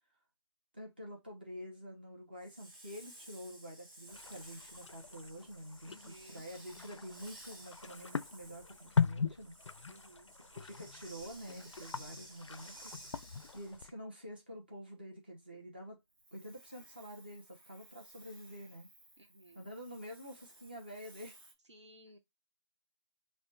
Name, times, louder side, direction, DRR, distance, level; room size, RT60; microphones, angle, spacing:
voice 1, 0.7-9.5 10.5-13.0 13.5-16.0 16.3-18.9 19.5-21.4, equal, 20° right, 0.7 m, -48 dB
Hiss, 2.4-13.9 16.1-21.5, right 1 dB, 45° right, 1.1 m, -56 dB
sound 1, 4.1-13.9, left 6 dB, 85° left, 0.4 m, -40 dB
voice 2, 5.8-6.5 9.9-10.3 19.2-19.7 21.7-22.2, right 1 dB, 75° right, 1.0 m, -57 dB
3.3 x 2.0 x 2.7 m
figure-of-eight pair, 180°, 15 cm